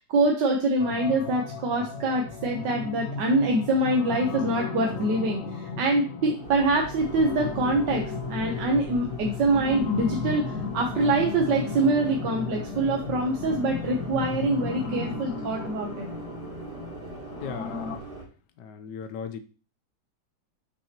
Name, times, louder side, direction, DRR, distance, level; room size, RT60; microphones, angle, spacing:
voice 1, 0.0-8.0 8.3-16.1, right 2 dB, 90° right, 1 dB, 1.6 m, -25 dB
sound 1, 0.8-18.0, left 5 dB, 60° left, 1.0 m, -35 dB
sound 2, 6.4-18.2, right 3 dB, 65° right, 3.4 m, -41 dB
voice 2, 17.4-18.0 18.6-19.4, left 6 dB, 80° left, 9 dB, 1.3 m, -37 dB
6.4 x 5.8 x 2.9 m, 0.36 s
omnidirectional pair, 1.9 m